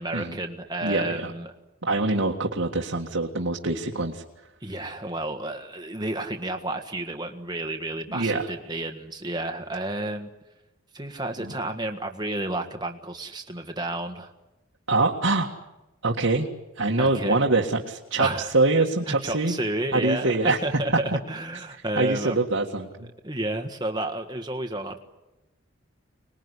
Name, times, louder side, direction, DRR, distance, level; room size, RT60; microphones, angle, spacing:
voice 1, 0.0-1.5 4.6-10.3 10.9-14.3 17.0-17.4 18.2-18.5 19.1-22.4 23.2-25.0, right 1 dB, 20° right, 5 dB, 1.6 m, -31 dB
voice 2, 0.8-1.3 1.8-4.2 8.1-8.5 11.4-11.6 14.9-15.5 16.0-16.5 16.8-19.5 19.9-20.6 21.1-21.2 22.0-23.1, right 2 dB, 65° right, -1 dB, 1.9 m, -24 dB
25.5 x 20.5 x 9.8 m, 1.0 s
head